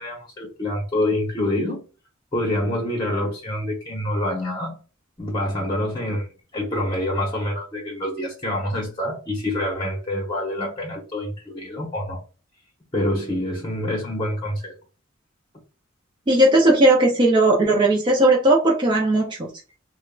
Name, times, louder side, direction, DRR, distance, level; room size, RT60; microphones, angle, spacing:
voice 1, 0.0-1.8 2.3-4.8 5.2-6.3 6.5-12.2 12.9-14.7, left 1 dB, 20° left, -1 dB, 0.8 m, -26 dB
voice 2, 16.3-19.5, right 1 dB, 25° right, -1 dB, 0.5 m, -17 dB
3.5 x 2.1 x 2.2 m, 0.34 s
head